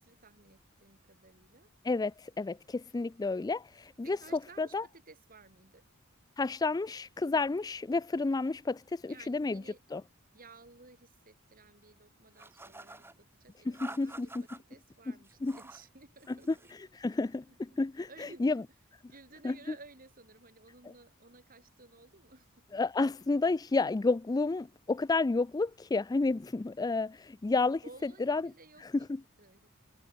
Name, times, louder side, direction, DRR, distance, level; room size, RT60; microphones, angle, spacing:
voice 1, 0.0-1.7 4.0-5.8 9.1-9.8 10.3-14.3 14.7-16.7 18.1-18.6 19.1-22.8 27.8-29.1 29.4-29.7, right 3 dB, 45° right, 6.9 m, -56 dB
voice 2, 1.8-4.2 4.6-4.8 6.4-9.6 9.9-10.0 13.7-14.5 15.1-15.2 15.4-15.6 16.3-16.4 16.7-18.6 19.4-19.6 22.7-28.5 28.8-29.2, left 3 dB, 20° left, 0.3 m, -31 dB
sound 1, 12.4-13.2 13.7-14.6 15.2-15.9 16.2-16.8, right 2 dB, 10° right, 2.2 m, -49 dB
head